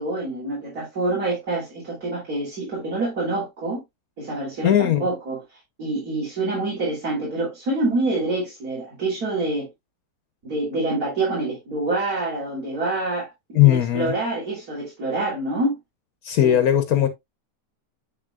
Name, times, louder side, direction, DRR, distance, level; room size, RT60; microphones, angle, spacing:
voice 1, 0.0-3.8 4.2-5.4 5.8-9.7 10.4-15.8 16.4-16.6 16.9-17.0, right 2 dB, 70° right, 3.8 m, -26 dB
voice 2, 4.6-5.1 13.5-14.1 16.2-17.1, left 11 dB, 70° left, 1.3 m, -18 dB
8.1 x 6.1 x 2.4 m
omnidirectional pair, 1.6 m